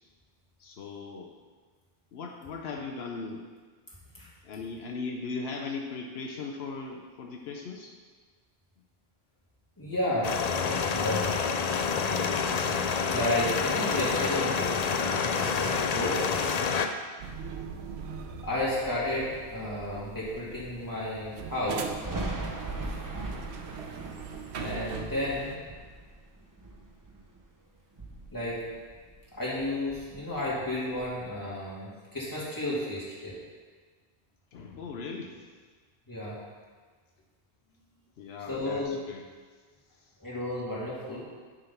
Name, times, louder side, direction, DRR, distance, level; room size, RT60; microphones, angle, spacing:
voice 1, 0.6-1.3 2.1-3.5 4.4-7.9 34.5-35.4 38.2-39.2, left 4 dB, 80° left, 1 dB, 0.9 m, -38 dB
voice 2, 9.8-10.3 10.6-11.2 13.1-14.7 15.1-16.2 18.4-21.9 24.5-25.5 28.3-28.6 29.4-33.3 36.1-36.4 38.5-39.0 40.2-41.2, left 1 dB, 20° left, -9 dB, 2.6 m, -32 dB
sound 1, 10.2-16.9, left 5 dB, 50° left, 0.5 m, -28 dB
sound 2, 17.2-25.6, right 6 dB, 85° right, 0.9 m, -41 dB
Thunder, 22.0-27.5 27.8-29.3 29.6-31.3, right 2 dB, 20° right, 0.6 m, -40 dB
9.9 x 3.8 x 5.7 m, 1.5 s
omnidirectional pair, 1.1 m